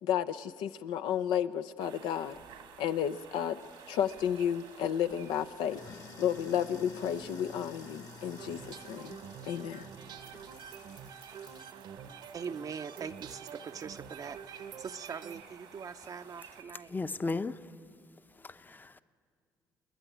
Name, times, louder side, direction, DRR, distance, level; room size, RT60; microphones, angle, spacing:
voice 1, 0.0-2.3 2.8-3.6 3.9-5.8 6.2-9.2 9.5-9.9, left 9 dB, 80° left, 9 dB, 0.6 m, -32 dB
sound 1, 1.8-16.6, right 8 dB, 85° right, 1.9 m, -53 dB
Sink (filling or washing), 3.6-11.7, left 5 dB, 45° left, 1.4 m, -53 dB
sound 2, 8.4-15.4, right 7 dB, 65° right, 1.0 m, -48 dB
voice 2, 12.3-16.9, right 6 dB, 50° right, 8 dB, 0.6 m, -42 dB
voice 3, 16.9-17.6 18.4-19.0, left 3 dB, 25° left, 12 dB, 0.7 m, -35 dB
29.0 x 10.0 x 9.2 m, 2.3 s
supercardioid pair, 65°, 8 cm